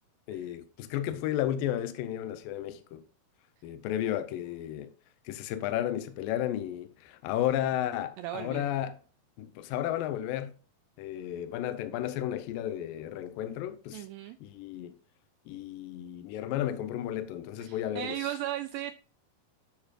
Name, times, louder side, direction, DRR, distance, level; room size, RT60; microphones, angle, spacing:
voice 1, 0.3-3.0 3.6-4.9 5.3-9.0 9.4-10.6 11.0-14.0 14.4-15.0 15.5-18.2, left 12 dB, 80° left, 2.1 m, -33 dB
voice 2, 8.2-8.7 13.9-14.4 17.6-18.9, right 12 dB, 85° right, 2.0 m, -36 dB
12.0 x 5.2 x 2.4 m
omnidirectional pair, 4.5 m